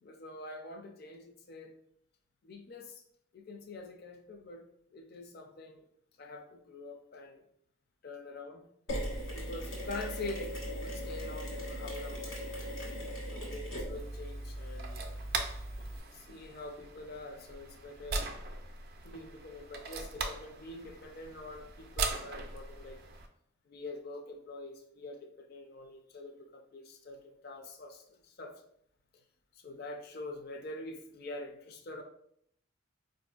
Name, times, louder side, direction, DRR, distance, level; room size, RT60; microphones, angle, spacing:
voice 1, 0.0-1.7 2.4-3.0 3.3-4.6 4.9-5.8 6.2-7.4 8.0-8.7 9.3-12.4 13.3-15.2 16.1-18.3 19.0-23.0 23.7-28.6 29.5-32.0, left 2 dB, 50° left, 4 dB, 0.4 m, -45 dB
Mechanisms, 8.9-16.0, equal, 80° left, 1.4 m, -39 dB
sound 1, 13.9-23.3, right 4 dB, 50° right, 0.3 m, -40 dB
4.3 x 2.5 x 2.3 m, 0.70 s
head